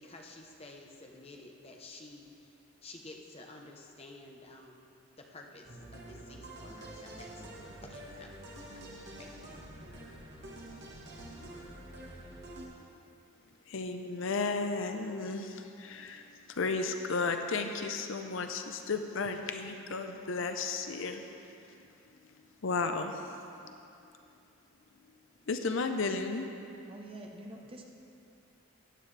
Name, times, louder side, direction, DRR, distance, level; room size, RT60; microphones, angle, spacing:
voice 1, 0.0-2.5 2.8-4.9 5.2-7.4 7.9-8.3 8.6-8.8 9.2-9.3, left 2 dB, 30° left, 1 dB, 0.8 m, -51 dB
Content warning, 5.7-12.7, right 1 dB, 50° right, 1.5 m, -47 dB
voice 2, 13.7-21.3 22.6-23.8 25.5-26.5, left 4 dB, 60° left, 6 dB, 0.6 m, -34 dB
voice 3, 26.9-27.8, right 1 dB, 25° right, 1 dB, 0.8 m, -46 dB
15.5 x 9.4 x 3.3 m, 2.7 s
head